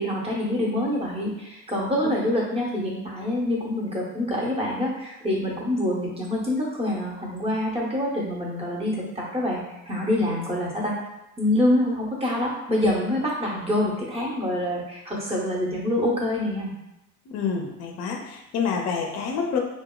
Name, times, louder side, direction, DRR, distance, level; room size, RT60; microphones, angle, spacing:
voice 1, 0.0-10.9 11.4-16.7, left 1 dB, 15° right, -3 dB, 0.7 m, -26 dB
voice 2, 17.3-19.6, left 6 dB, 35° left, 2 dB, 0.5 m, -27 dB
2.7 x 2.3 x 2.2 m, 0.90 s
figure-of-eight pair, 65°, 48 cm